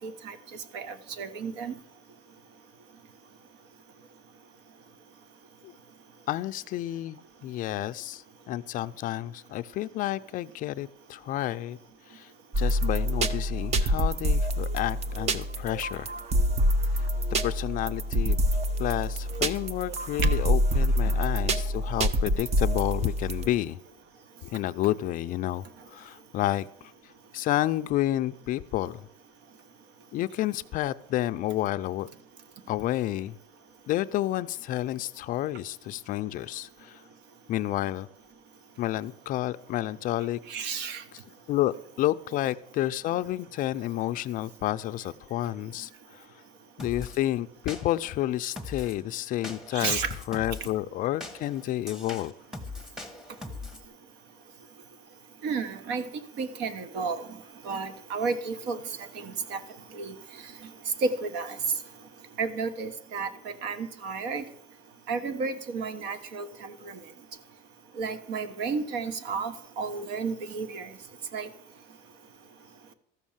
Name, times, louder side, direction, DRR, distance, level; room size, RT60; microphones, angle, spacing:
voice 1, 0.0-1.8 40.5-41.0 49.7-50.1 55.4-56.1 56.4-57.3 57.6-59.6 59.9-60.1 60.4-60.5 61.0-61.6 62.4-64.5 65.1-67.0 68.0-70.9 71.3-71.5, right 4 dB, 60° right, 12 dB, 1.2 m, -32 dB
voice 2, 6.3-11.8 12.1-12.3 12.6-16.1 17.4-18.4 18.8-23.8 24.4-26.7 27.3-29.1 30.1-32.1 32.7-33.4 33.9-37.0 37.5-38.1 38.8-40.4 41.5-46.3 46.8-50.0 50.3-52.3, left 14 dB, 45° left, 13 dB, 0.4 m, -30 dB
sound 1, 12.5-23.5, equal, 35° right, 0.8 m, -26 dB
sound 2, 46.8-47.2 47.7-48.1 48.6-49.0 49.4-50.7 51.2-53.8, left 3 dB, ahead, 1.1 m, -40 dB
13.5 x 6.2 x 7.3 m, 0.74 s
cardioid pair, 140°, 20 cm